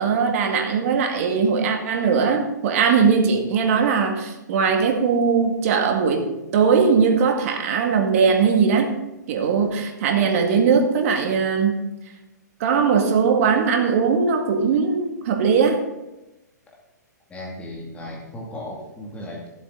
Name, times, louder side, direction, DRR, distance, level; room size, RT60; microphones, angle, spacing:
voice 1, 0.0-8.9 9.3-11.8 12.6-15.8, right 5 dB, 50° right, 3 dB, 2.0 m, -20 dB
voice 2, 17.3-19.5, left 1 dB, 15° left, -2 dB, 2.3 m, -35 dB
15.5 x 7.9 x 3.9 m, 0.96 s
hypercardioid pair, 125°, 10 cm